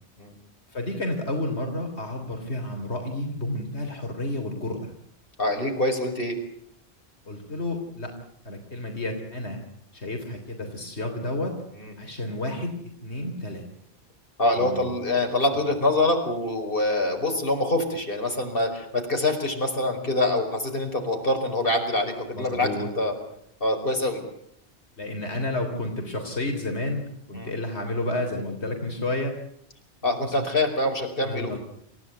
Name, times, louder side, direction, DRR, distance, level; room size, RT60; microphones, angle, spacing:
voice 1, 0.7-4.9 7.3-8.2 8.4-9.6 9.9-11.6 12.0-12.8 13.0-13.6 14.5-14.9 15.5-15.6 22.3-22.9 25.0-29.3 30.1-30.5 31.2-31.6, left 1 dB, 80° left, 3 dB, 3.7 m, -31 dB
voice 2, 5.4-6.4 11.7-11.9 14.4-23.1 23.6-24.2 27.3-27.5 30.0-31.6, left 2 dB, 55° left, 3 dB, 5.3 m, -25 dB
29.0 x 16.0 x 9.4 m, 0.73 s
omnidirectional pair, 1.1 m